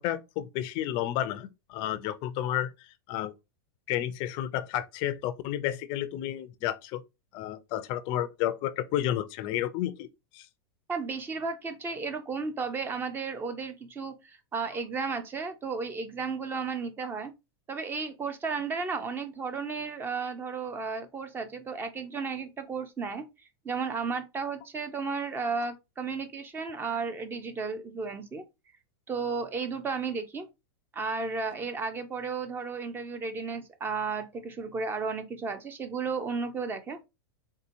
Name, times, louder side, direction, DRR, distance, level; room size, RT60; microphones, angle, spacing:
voice 1, 0.0-3.3 3.9-7.0 7.3-10.1 10.3-10.5, left 12 dB, 40° left, 0.4 m, -31 dB
voice 2, 10.9-17.3 17.7-28.4 29.1-30.5 30.9-37.0, right 4 dB, 15° right, 0.5 m, -33 dB
3.7 x 2.7 x 2.5 m
supercardioid pair, 140°, 13 cm